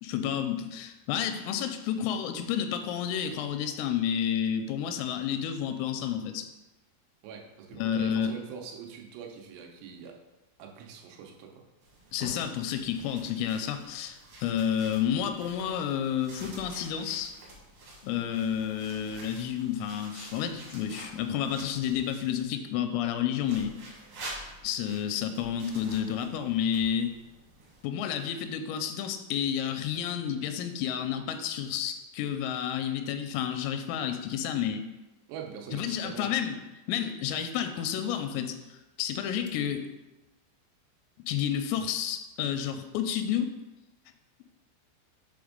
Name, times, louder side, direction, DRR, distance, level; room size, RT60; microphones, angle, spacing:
voice 1, 0.0-6.5 7.8-8.3 12.1-17.3 18.0-23.8 24.6-27.1 27.8-34.8 35.7-36.5 36.9-39.9 41.3-43.5, left 9 dB, 85° left, 8 dB, 3.2 m, -30 dB
voice 2, 7.2-10.2 10.6-11.6 35.3-36.4, right 7 dB, 90° right, 1 dB, 3.6 m, -43 dB
sound 1, 11.8-22.4 23.4-27.8, right 1 dB, 75° right, 1.4 m, -48 dB
7.9 x 3.5 x 5.1 m, 1.0 s
omnidirectional pair, 5.8 m